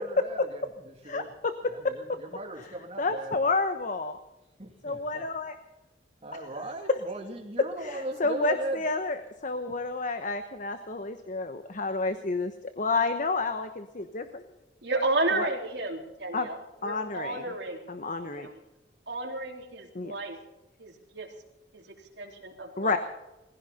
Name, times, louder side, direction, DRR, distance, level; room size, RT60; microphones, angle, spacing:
voice 1, 0.0-1.3 1.7-3.3 4.6-5.2 6.2-8.8, right 1 dB, 35° right, 2 dB, 2.9 m, -38 dB
voice 2, 1.0-1.7 2.1-2.2 3.0-4.2 4.8-5.6 7.8-14.4 15.3-15.5 16.3-16.5 16.8-17.4 17.9-18.5 19.9-20.1 22.8-23.0, left 3 dB, 45° left, 9 dB, 1.1 m, -30 dB
voice 3, 14.8-17.9 18.3-18.6 19.1-20.4 20.8-21.3 21.7-21.8 22.2-23.0, right 2 dB, 70° right, 1 dB, 4.0 m, -32 dB
20.5 x 16.0 x 4.3 m, 0.93 s
head